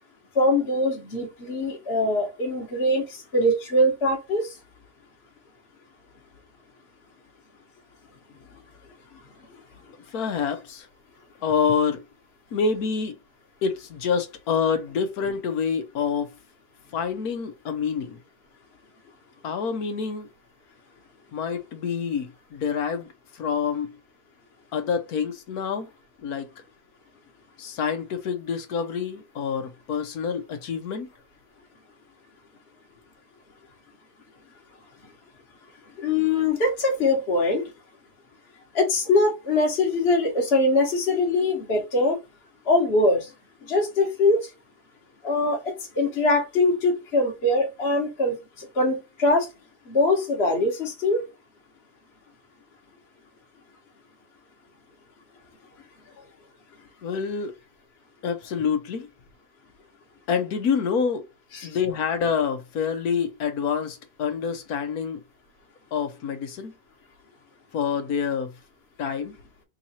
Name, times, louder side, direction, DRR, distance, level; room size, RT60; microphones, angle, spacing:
voice 1, 0.3-3.0 3.3-4.5 36.0-37.7 38.7-42.2 42.7-43.3 43.7-44.4 45.2-49.5 49.9-51.2 61.5-61.7, left 2 dB, 40° left, 1.5 m, -22 dB
voice 2, 10.1-10.9 11.4-12.0 12.5-13.2 13.6-16.3 16.9-18.2 19.4-20.3 21.3-23.9 24.7-25.9 26.2-26.5 27.6-31.1 57.0-57.5 58.2-59.1 60.3-61.2 61.6-65.2 65.9-66.7 67.7-68.5 69.0-69.3, left 6 dB, 70° left, 1.3 m, -27 dB
3.7 x 2.8 x 4.3 m
omnidirectional pair, 1.7 m